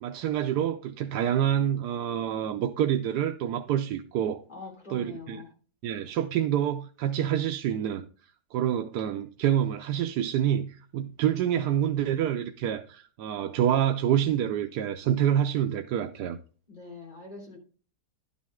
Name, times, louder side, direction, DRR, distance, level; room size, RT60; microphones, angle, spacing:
voice 1, 0.0-4.4 4.9-5.4 5.8-8.0 8.5-16.4, right 10 dB, 80° right, 1.2 m, -27 dB
voice 2, 4.5-5.5 16.7-17.6, left 4 dB, 30° left, 3.3 m, -43 dB
11.5 x 6.4 x 3.6 m
omnidirectional pair, 1.8 m